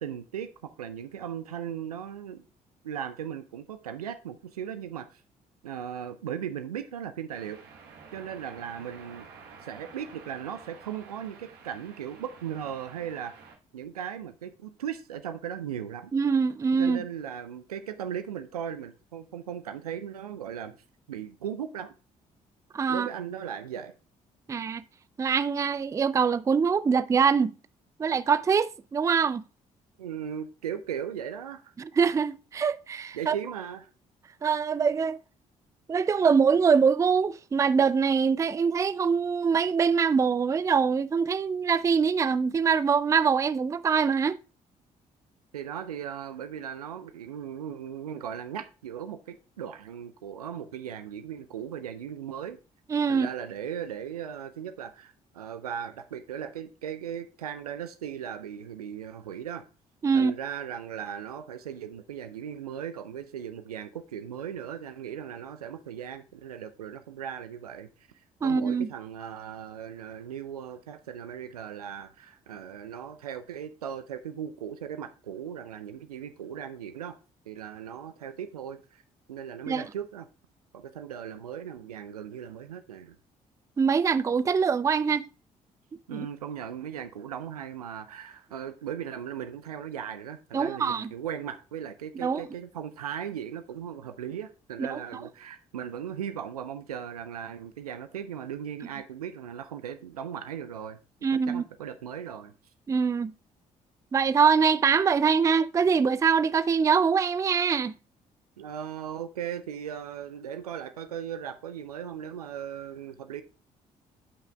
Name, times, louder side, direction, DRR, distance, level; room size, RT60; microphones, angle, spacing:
voice 1, 0.0-2.4 2.8-5.2 5.6-7.6 8.1-9.3 9.6-13.4 13.7-16.1 16.8-20.8 21.1-21.9 22.9-23.9 30.0-31.7 33.1-33.9 36.0-36.1 45.5-52.6 53.1-59.6 60.1-67.9 68.4-77.2 77.5-79.0 79.3-80.3 80.7-83.2 86.1-101.0 101.5-102.5 108.6-113.4, right 9 dB, 85° right, 0.5 m, -37 dB
sound 1, 7.3-13.6, right 5 dB, 60° right, 1.1 m, -50 dB
voice 2, 16.1-17.0 22.7-23.1 24.5-24.8 25.2-27.5 28.0-29.4 31.8-33.4 34.4-35.2 35.9-44.4 52.9-53.3 60.0-60.3 68.4-68.9 79.7-79.8 83.8-85.2 86.1-86.3 90.5-91.1 92.2-92.5 94.8-95.2 101.2-101.6 102.9-103.3 104.1-107.9, right 6 dB, 15° right, 0.3 m, -24 dB
12.0 x 5.6 x 2.3 m
figure-of-eight pair, 45°, 19 cm